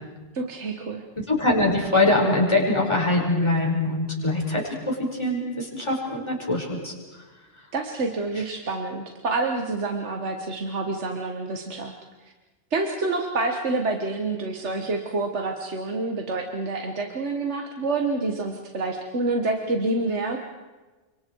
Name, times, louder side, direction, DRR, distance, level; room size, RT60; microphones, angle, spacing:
voice 1, 0.3-1.0 7.7-11.9 12.2-12.3 12.7-20.4, right 3 dB, 70° right, 3 dB, 1.9 m, -27 dB
voice 2, 1.3-6.9 8.4-8.5, left 2 dB, 25° left, -1 dB, 5.3 m, -23 dB
30.0 x 27.0 x 4.7 m, 1.2 s
omnidirectional pair, 1.2 m